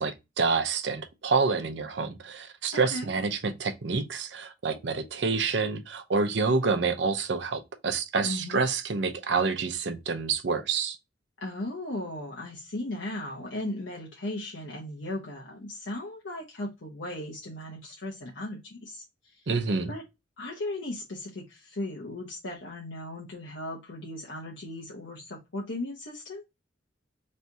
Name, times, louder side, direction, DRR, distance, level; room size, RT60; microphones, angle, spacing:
voice 1, 0.0-11.0 19.5-19.9, right 4 dB, 70° right, 0.7 m, -28 dB
voice 2, 2.7-3.1 8.2-8.6 11.4-19.5 19.9-20.0 20.4-26.4, left 1 dB, 90° left, 1.0 m, -37 dB
3.2 x 2.7 x 4.6 m
head